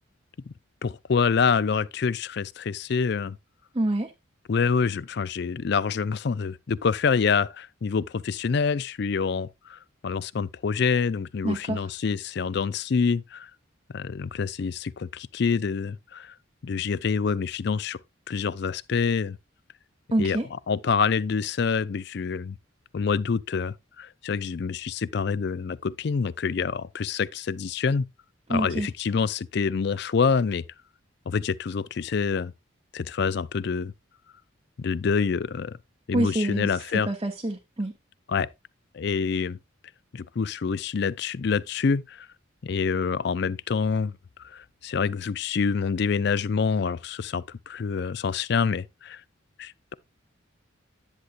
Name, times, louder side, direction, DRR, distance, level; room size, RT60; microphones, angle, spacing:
voice 1, 0.8-3.4 4.5-13.5 13.9-16.3 16.6-18.0 18.3-19.4 20.2-20.4 20.7-22.6 22.9-28.0 28.5-30.6 31.3-32.5 32.9-33.9 34.8-35.8 36.1-37.1 38.3-38.5 38.9-39.6 40.1-42.3 42.6-44.1 44.4-49.2 49.6-49.9, left 5 dB, 55° left, 0.4 m, -26 dB
voice 2, 3.7-4.1 11.4-11.9 20.1-20.5 28.5-28.9 36.1-36.7 37.1-37.9, right 1 dB, 25° right, 0.8 m, -26 dB
10.5 x 8.1 x 2.4 m
head